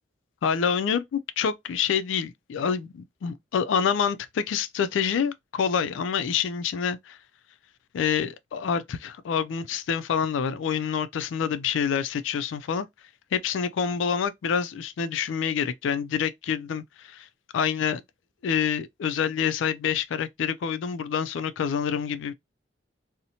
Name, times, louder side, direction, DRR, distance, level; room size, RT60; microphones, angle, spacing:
voice 1, 0.4-7.2 7.9-12.9 13.3-17.3 17.5-18.0 18.4-22.3, left 7 dB, 75° left, 0.3 m, -27 dB
2.7 x 2.0 x 2.7 m
head